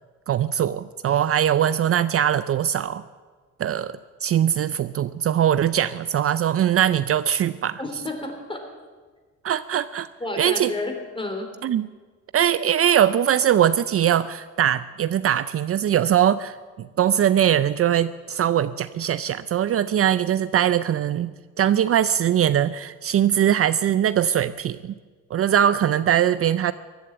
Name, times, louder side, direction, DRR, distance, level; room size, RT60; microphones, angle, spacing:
voice 1, 0.3-3.0 3.6-7.8 9.4-10.1 10.4-10.7 11.6-11.9 12.3-16.6 17.0-21.3 21.6-24.9 25.3-26.7, right 10 dB, 50° right, 15 dB, 0.5 m, -21 dB
voice 2, 7.8-8.7 10.2-11.5, left 2 dB, 15° left, 4 dB, 3.3 m, -31 dB
15.5 x 11.5 x 8.0 m, 1.4 s
cardioid pair, 90°, 30 cm